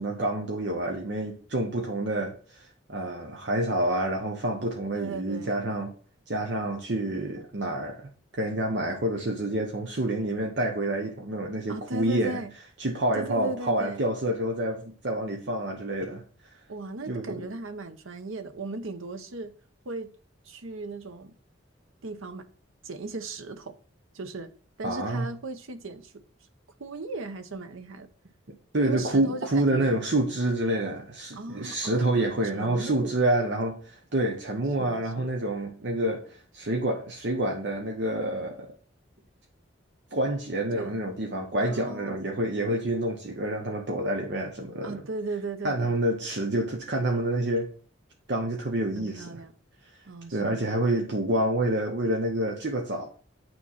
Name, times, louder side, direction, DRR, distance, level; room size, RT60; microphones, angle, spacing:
voice 1, 0.0-5.9 6.3-12.4 12.8-16.2 17.1-17.5 24.8-25.3 28.7-38.7 40.1-45.0 45.6-47.7 48.3-49.4 50.3-53.2, right 1 dB, 55° right, 0.8 m, -28 dB
voice 2, 4.9-5.6 11.7-12.5 13.1-14.0 16.7-19.5 19.8-20.1 20.4-21.4 22.0-22.5 22.8-23.7 24.1-24.5 24.8-26.2 26.8-28.1 28.8-30.1 31.3-33.2 34.8-35.3 40.7-40.9 41.6-42.2 44.8-46.0 49.0-49.5 50.1-50.7, right 3 dB, 90° right, 0.8 m, -37 dB
8.8 x 3.1 x 5.5 m
head